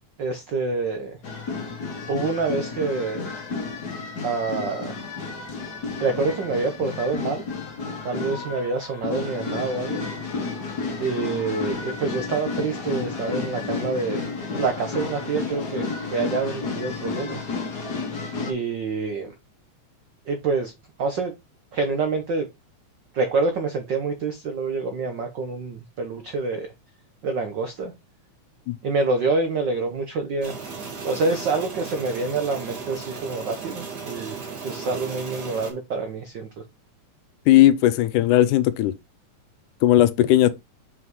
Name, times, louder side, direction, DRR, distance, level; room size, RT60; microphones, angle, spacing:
voice 1, 0.2-1.2 2.1-3.3 4.2-5.0 6.0-7.4 8.0-10.0 11.0-14.2 14.5-17.4 18.4-19.3 20.3-20.7 21.0-21.3 21.7-22.5 23.1-26.7 27.2-27.9 28.8-30.5 31.0-36.5, right 4 dB, 80° right, 1.0 m, -27 dB
sound 1, 1.2-18.5, left 4 dB, 40° left, 1.9 m, -31 dB
sound 2, 30.4-35.7, right 5 dB, 40° right, 1.9 m, -36 dB
voice 2, 37.5-39.0 39.8-40.5, left 14 dB, 90° left, 2.1 m, -17 dB
5.9 x 5.7 x 3.1 m
omnidirectional pair, 3.4 m